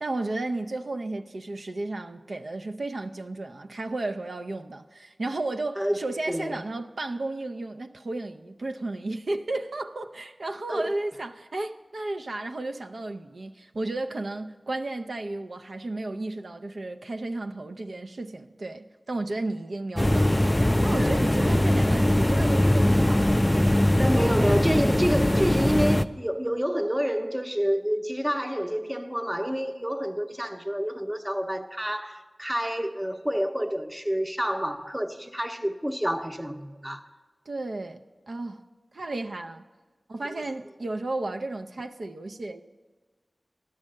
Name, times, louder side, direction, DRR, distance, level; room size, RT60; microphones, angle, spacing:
voice 1, 0.0-23.4 37.5-38.0 38.3-38.6 38.9-39.6 40.1-42.6, right 2 dB, 75° right, 0.4 m, -33 dB
sound 1, 20.0-26.0, left 1 dB, 15° left, 0.3 m, -21 dB
voice 2, 21.0-21.5 24.0-37.0, equal, 10° right, 0.6 m, -28 dB
11.5 x 6.3 x 7.6 m
wide cardioid pair, 50°, 0 cm